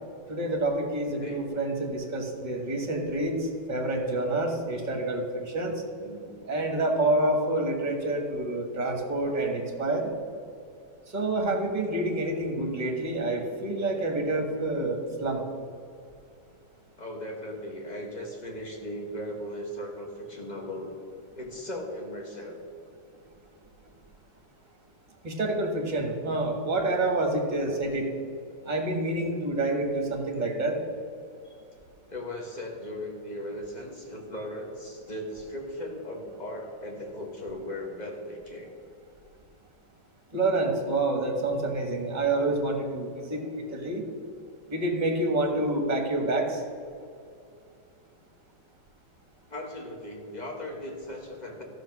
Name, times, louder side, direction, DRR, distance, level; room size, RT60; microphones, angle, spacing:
voice 1, 0.3-5.7 6.5-10.1 11.1-15.4 25.2-28.1 28.7-30.8 40.3-43.4 43.7-44.0 44.7-46.6, right 2 dB, 25° right, 3 dB, 1.4 m, -28 dB
voice 2, 6.0-6.5 17.0-20.9 21.3-22.6 32.1-38.7 49.5-51.6, left 1 dB, 25° left, 1 dB, 1.5 m, -38 dB
13.5 x 6.4 x 6.1 m, 2.4 s
omnidirectional pair, 2.1 m